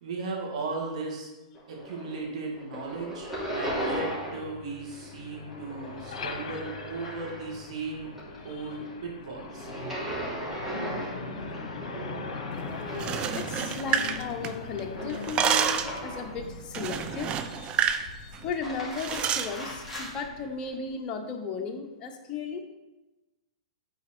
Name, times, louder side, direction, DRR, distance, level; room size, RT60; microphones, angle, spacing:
voice 1, 0.0-1.3 1.7-8.1 8.4-9.7, right 3 dB, 70° right, 0 dB, 2.1 m, -36 dB
sound 1, 1.5-2.3 2.5-4.6 4.8-7.7 8.1-16.4 16.9-17.6 18.4-20.1, equal, 5° right, 2.8 m, -38 dB
Truck, 3.3-20.9, left 5 dB, 75° left, 0.9 m, -42 dB
voice 2, 12.8-17.4 18.4-22.6, left 5 dB, 30° left, 2 dB, 1.1 m, -35 dB
sound 2, 12.9-14.8 15.1-16.0 16.7-18.1 18.3-18.5 19.0-19.5, right 8 dB, 30° right, 0.5 m, -28 dB
8.3 x 4.3 x 4.5 m, 1.1 s
hypercardioid pair, 130°, 4 cm